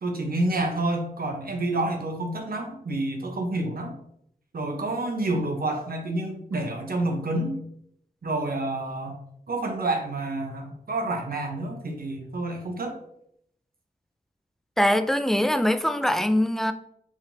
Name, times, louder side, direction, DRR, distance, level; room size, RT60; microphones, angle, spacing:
voice 1, 0.0-4.0 4.5-7.6 8.2-9.2 9.5-13.0, right 2 dB, 65° right, 2 dB, 1.0 m, -28 dB
voice 2, 14.8-16.7, left 1 dB, ahead, 9 dB, 0.3 m, -22 dB
4.7 x 3.7 x 2.8 m, 0.71 s
wide cardioid pair, 85°, 16 cm